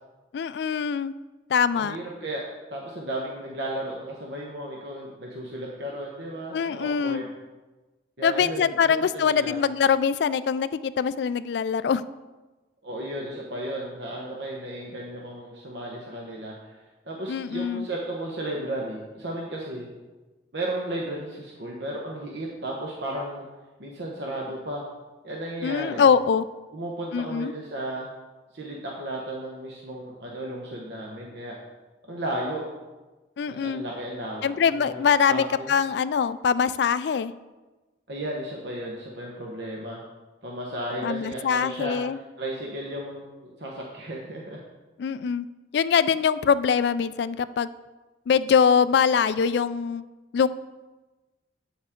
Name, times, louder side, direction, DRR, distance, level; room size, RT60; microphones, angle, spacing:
voice 1, 0.3-1.1 1.5-2.0 6.5-7.2 8.2-12.0 17.3-17.9 25.6-26.5 27.1-27.5 33.4-33.8 34.4-37.3 41.0-42.2 45.0-45.5 45.7-47.7 48.3-50.0 50.3-50.5, left 6 dB, 65° left, 15 dB, 0.3 m, -23 dB
voice 2, 1.8-2.4 2.7-7.3 8.2-9.6 12.8-16.7 17.1-19.9 20.5-23.5 23.8-24.8 25.2-26.0 26.7-28.1 28.5-31.6 32.1-32.6 33.5-35.7 38.1-40.0 40.4-42.0 42.4-44.6, right 1 dB, 70° right, -2 dB, 1.1 m, -34 dB
8.6 x 7.2 x 3.7 m, 1.2 s
head